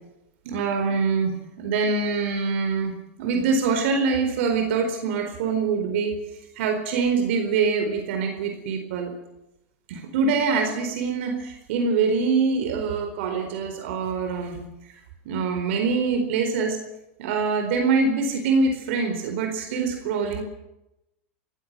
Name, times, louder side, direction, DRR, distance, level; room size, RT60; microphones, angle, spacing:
voice 1, 0.4-6.1 6.6-9.1 9.9-14.6 15.2-16.8 17.2-20.4, right 4 dB, 70° right, 5 dB, 4.3 m, -24 dB
24.5 x 15.5 x 7.5 m, 0.89 s
hypercardioid pair, 105°, 7 cm